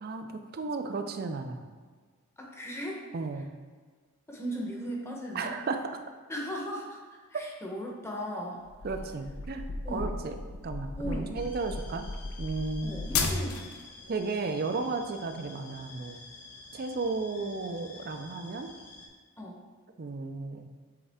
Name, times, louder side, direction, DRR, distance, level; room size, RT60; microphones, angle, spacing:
voice 1, 0.0-1.6 3.1-3.5 5.3-5.8 8.8-10.4 10.6-12.1 12.4-13.0 14.1-16.2 16.7-18.7 20.0-20.7, right 3 dB, 45° right, 7 dB, 0.4 m, -34 dB
voice 2, 2.4-3.0 4.3-5.5 6.3-8.6 9.8-10.2 11.0-11.4 12.8-13.7 19.4-19.6, equal, 10° left, -2 dB, 0.8 m, -37 dB
sound 1, 8.7-13.8, left 3 dB, 65° left, 0.6 m, -34 dB
sound 2, 11.3-19.1, left 3 dB, 90° left, 1.1 m, -50 dB
7.8 x 3.6 x 3.5 m, 1.5 s
head